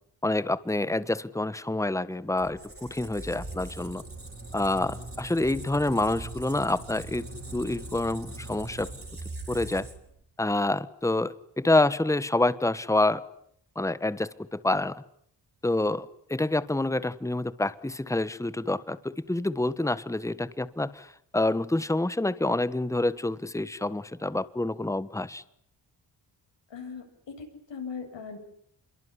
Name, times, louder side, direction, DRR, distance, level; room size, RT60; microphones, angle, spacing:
voice 1, 0.2-4.0 4.5-7.3 7.5-8.9 9.5-9.9 10.4-13.2 13.7-14.9 15.6-25.4, left 2 dB, 5° left, 16 dB, 1.4 m, -27 dB
Squeak, 2.4-10.2, right 2 dB, 30° right, 7.0 m, -41 dB
voice 2, 26.7-28.4, left 5 dB, 70° left, 4 dB, 8.0 m, -39 dB
26.0 x 23.0 x 9.9 m, 0.68 s
cardioid pair, 60°, 45 cm